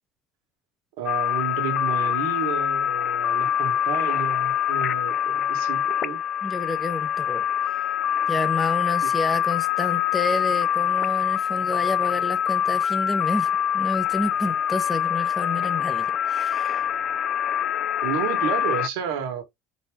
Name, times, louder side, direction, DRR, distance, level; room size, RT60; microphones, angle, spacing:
voice 1, 1.0-6.2 9.0-9.1 18.0-19.4, right 8 dB, 75° right, 1.4 m, -31 dB
sound 1, 1.1-18.9, left 9 dB, 35° left, 0.3 m, -24 dB
voice 2, 6.4-7.4 8.3-16.9, left 2 dB, 10° left, 0.7 m, -30 dB
4.0 x 2.7 x 3.5 m
cardioid pair, 155°, 0 cm